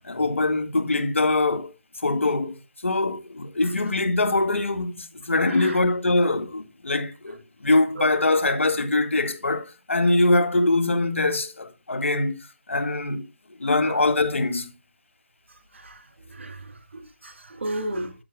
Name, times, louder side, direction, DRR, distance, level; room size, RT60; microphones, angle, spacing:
voice 1, 0.0-1.7 2.0-13.2 13.6-14.7, left 2 dB, 80° left, 2.0 m, -23 dB
voice 2, 5.5-5.8 8.0-8.5 13.8-14.0 15.7-18.1, right 1 dB, 70° right, 2.7 m, -35 dB
13.5 x 6.8 x 2.4 m
figure-of-eight pair, 160°, 7 cm